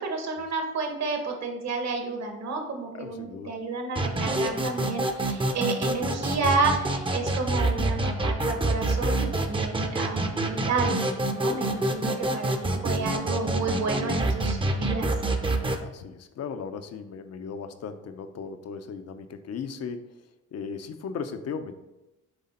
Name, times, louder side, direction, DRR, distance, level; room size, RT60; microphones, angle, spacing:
voice 1, 0.0-10.9 11.3-15.1, right 3 dB, 60° right, 3 dB, 1.4 m, -30 dB
voice 2, 2.9-3.6 11.5-12.0 15.8-21.8, left 6 dB, 55° left, 9 dB, 0.7 m, -37 dB
sound 1, 4.0-15.8, right 2 dB, 15° right, 0.7 m, -27 dB
7.9 x 3.4 x 4.3 m, 0.96 s
cardioid pair, 90°, 30 cm